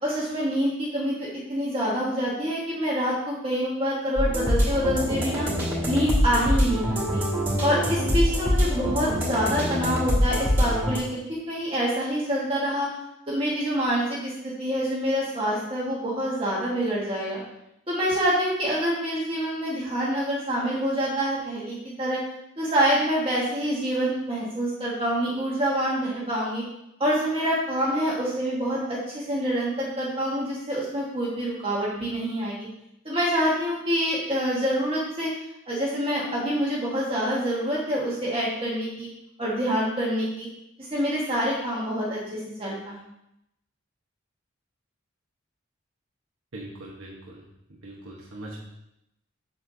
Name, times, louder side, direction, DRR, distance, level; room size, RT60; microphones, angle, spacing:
voice 1, 0.0-1.1 1.5-5.5 5.9-7.2 7.6-12.9 13.3-14.3 14.6-17.4 17.9-22.2 22.6-26.6 27.0-32.7 33.0-35.3 35.7-39.1 39.4-40.5 40.9-42.2 42.6-43.0, equal, 30° right, -6 dB, 1.5 m, -26 dB
sound 1, 4.2-11.0, equal, 10° right, 2.5 m, -24 dB
voice 2, 46.5-47.4 47.7-48.6, right 1 dB, 85° right, -3 dB, 1.2 m, -41 dB
7.9 x 7.2 x 2.7 m, 0.83 s
head